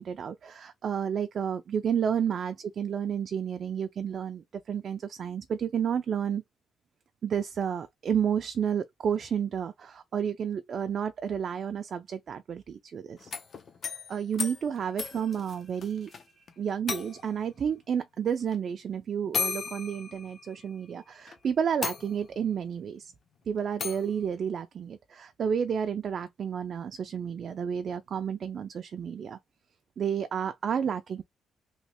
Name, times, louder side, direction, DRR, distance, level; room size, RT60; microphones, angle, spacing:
voice 1, 0.0-6.4 7.2-13.3 14.1-23.1 23.5-29.4 30.0-31.2, right 8 dB, 55° right, 0.4 m, -31 dB
sound 1, 13.2-16.2 16.5-16.6 16.9-17.4 18.5-18.6 19.3-20.8 21.3-21.4 21.8-22.5 23.8-24.1, left 5 dB, 50° left, 0.7 m, -35 dB
3.1 x 2.8 x 2.9 m
cardioid pair, 90°, 0 cm